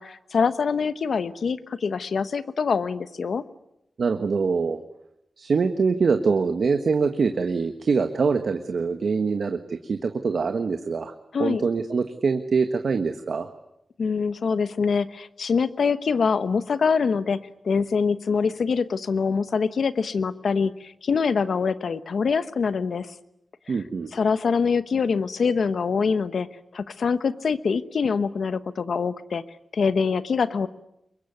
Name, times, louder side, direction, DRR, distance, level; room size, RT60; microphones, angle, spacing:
voice 1, 0.0-3.4 11.3-11.6 14.0-23.1 23.7-23.8 24.1-26.5 26.7-29.4 29.7-30.7, left 5 dB, 80° left, 13 dB, 1.1 m, -24 dB
voice 2, 4.0-4.8 5.4-11.1 11.4-13.5 23.7-24.1, right 5 dB, 75° right, 7 dB, 1.4 m, -24 dB
24.0 x 22.0 x 9.5 m, 0.85 s
cardioid pair, 65°, 0 cm